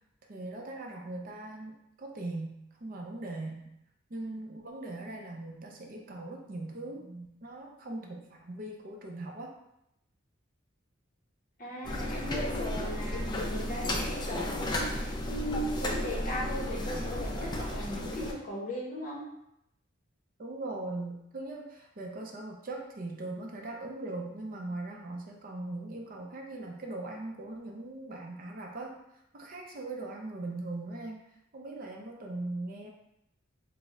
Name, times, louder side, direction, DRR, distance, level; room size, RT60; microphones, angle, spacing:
voice 1, 0.3-3.7 4.1-9.5 20.4-29.0 29.3-31.2 31.5-32.9, right 2 dB, 45° right, 1 dB, 0.5 m, -40 dB
voice 2, 11.6-19.2, equal, 40° left, -2 dB, 0.7 m, -38 dB
sound 1, 11.8-18.3, left 1 dB, 20° left, 0.4 m, -33 dB
3.5 x 2.0 x 4.1 m, 0.80 s
head